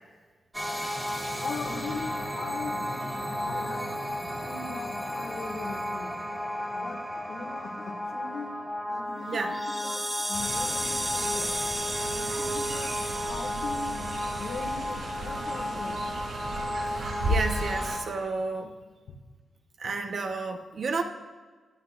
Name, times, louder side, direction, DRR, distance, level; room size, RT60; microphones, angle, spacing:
sound 1, 0.5-18.0, equal, 5° right, 1.6 m, -33 dB
voice 1, 1.4-3.9 4.4-6.1 6.7-8.5 8.9-11.5 12.2-14.0 14.4-16.0 19.1-19.2, left 4 dB, 85° left, 2 dB, 1.9 m, -40 dB
Fowl, 10.3-18.0, right 1 dB, 85° right, 3.1 m, -35 dB
voice 2, 16.9-18.8 19.8-21.0, right 4 dB, 55° right, 4 dB, 1.1 m, -32 dB
22.0 x 11.0 x 2.5 m, 1.4 s
wide cardioid pair, 145°, 0 cm